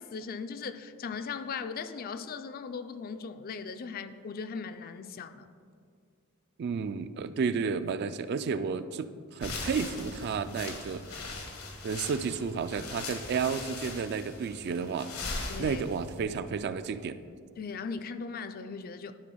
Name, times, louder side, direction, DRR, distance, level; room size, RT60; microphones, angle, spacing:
voice 1, 0.0-5.5 15.5-15.8 17.6-19.1, left 5 dB, 45° left, 10 dB, 0.4 m, -38 dB
voice 2, 6.6-11.0 11.8-15.1 15.6-17.2, right 5 dB, 50° right, 12 dB, 0.3 m, -32 dB
sound 1, 9.4-16.2, left 3 dB, 85° left, 1.4 m, -40 dB
11.5 x 4.2 x 5.4 m, 2.2 s
head